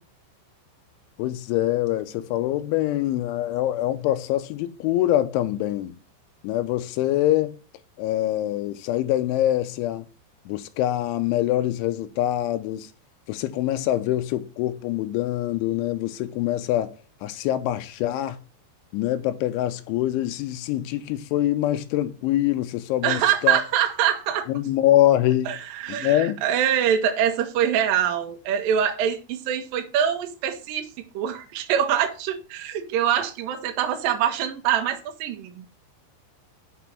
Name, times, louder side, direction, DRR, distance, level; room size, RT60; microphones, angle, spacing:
voice 1, 1.2-5.9 6.4-7.6 8.0-10.1 10.5-12.9 13.3-16.9 17.2-18.4 18.9-23.6 24.5-25.5 25.9-26.4, left 13 dB, 85° left, 3.2 m, -24 dB
voice 2, 23.0-24.5 25.5-30.9 31.1-35.7, right 9 dB, 80° right, 2.0 m, -24 dB
6.4 x 6.1 x 5.7 m
omnidirectional pair, 5.4 m